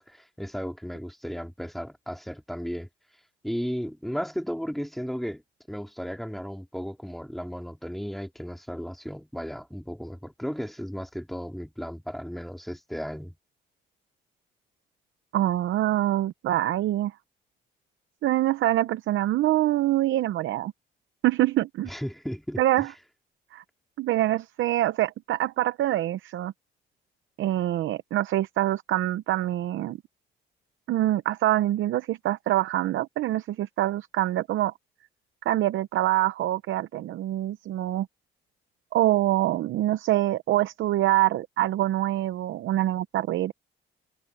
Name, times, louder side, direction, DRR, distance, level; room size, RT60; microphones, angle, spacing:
voice 1, 0.0-2.9 3.4-5.4 5.7-13.4 21.8-22.9, equal, ahead, 4.3 m, -35 dB
voice 2, 15.3-17.1 18.2-20.7 21.2-21.9 22.6-22.9 23.5-23.6 24.0-26.5 27.4-30.0 30.9-34.7 35.4-38.1 38.9-43.5, right 14 dB, 75° right, 0.7 m, -25 dB
cardioid pair, 90°, 20 cm